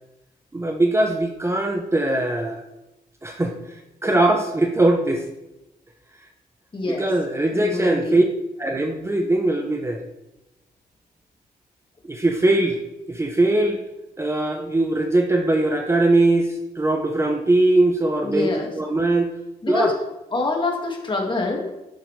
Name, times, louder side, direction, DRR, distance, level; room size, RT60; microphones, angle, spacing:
voice 1, 0.5-2.6 3.2-5.3 6.9-8.2 8.6-10.0 12.0-12.8 13.1-13.8 14.2-19.3 19.7-19.9, right 2 dB, 15° right, 4 dB, 0.8 m, -21 dB
voice 2, 6.7-7.1 7.5-8.2 18.2-18.7 19.6-19.9 20.3-21.7, left 3 dB, 30° left, 1 dB, 1.9 m, -25 dB
9.3 x 6.6 x 3.2 m, 0.94 s
cardioid pair, 85°, 16 cm